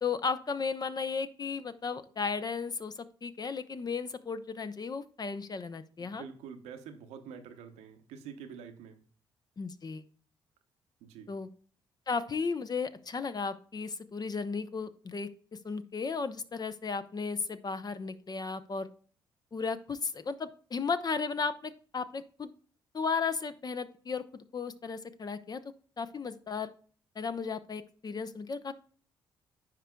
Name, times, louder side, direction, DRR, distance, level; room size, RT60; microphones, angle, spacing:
voice 1, 0.0-2.9 3.2-6.2 9.6-10.0 11.3-11.5 12.1-15.3 15.6-18.9 19.5-22.5 22.9-24.3 24.5-25.6 26.0-26.7 27.2-28.7, left 5 dB, 35° left, 12 dB, 0.7 m, -35 dB
voice 2, 6.0-9.0 11.0-11.3, right 7 dB, 80° right, 7 dB, 0.8 m, -47 dB
9.6 x 4.5 x 2.2 m, 0.43 s
hypercardioid pair, 50°, 11 cm